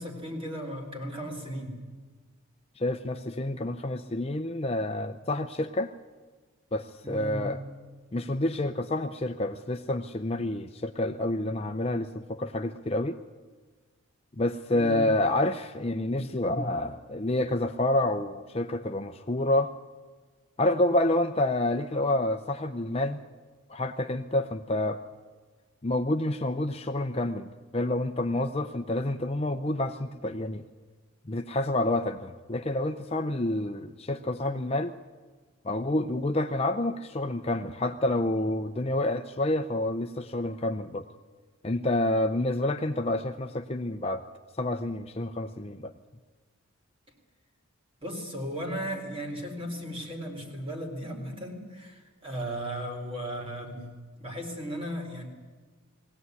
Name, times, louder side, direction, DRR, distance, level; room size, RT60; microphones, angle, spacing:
voice 1, 0.0-1.8 7.0-7.4 14.7-15.0 48.0-55.3, equal, 25° right, 1 dB, 4.1 m, -36 dB
voice 2, 2.8-5.9 6.7-7.6 8.1-13.2 14.4-19.7 20.6-23.2 23.7-25.0 25.8-30.6 31.3-34.9 35.6-41.1 41.6-44.2 44.6-45.9, left 1 dB, 25° left, 6 dB, 0.6 m, -28 dB
21.0 x 17.0 x 9.6 m, 1.4 s
head